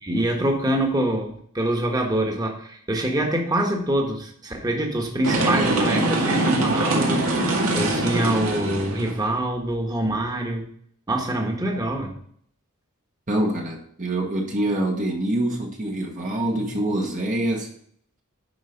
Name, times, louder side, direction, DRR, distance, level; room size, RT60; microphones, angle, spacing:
voice 1, 0.0-7.5 7.7-10.7 11.1-12.1, right 1 dB, 20° right, 1 dB, 1.4 m, -25 dB
sound 1, 5.2-9.2, right 1 dB, 80° right, 2.1 m, -23 dB
voice 2, 13.3-17.7, right 1 dB, 35° right, 0 dB, 1.2 m, -25 dB
10.5 x 4.7 x 5.2 m, 0.62 s
head